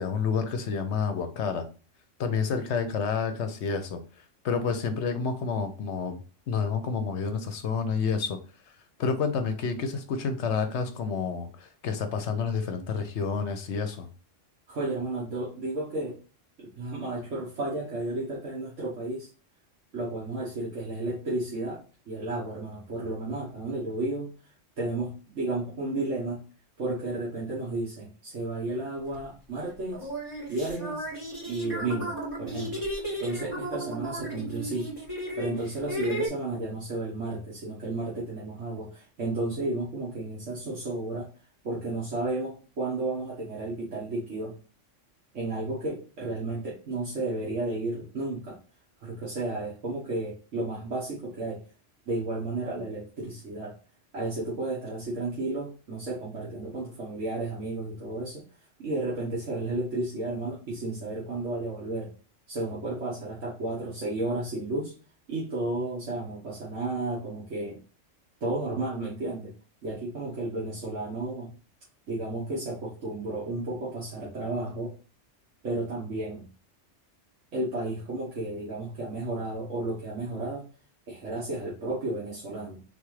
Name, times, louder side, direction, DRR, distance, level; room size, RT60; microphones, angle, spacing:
voice 1, 0.0-1.6 2.2-4.0 4.4-6.2 6.5-8.4 9.0-14.1, left 5 dB, 70° left, 8 dB, 0.9 m, -29 dB
voice 2, 14.7-16.2 16.6-19.3 19.9-24.3 24.8-26.4 26.8-30.1 30.5-31.1 31.4-34.9 35.4-41.3 41.6-44.5 45.3-48.6 49.0-51.6 52.1-53.7 54.1-58.4 58.8-62.1 62.5-64.9 65.3-67.8 68.4-69.5 69.8-71.5 72.1-74.9 75.6-76.5 77.5-80.6 81.1-82.8, right 2 dB, 75° right, -6 dB, 1.6 m, -32 dB
sound 1, 29.1-29.2 29.9-36.3, right 1 dB, 20° right, 2.4 m, -34 dB
3.9 x 3.5 x 3.1 m, 0.36 s
omnidirectional pair, 1.3 m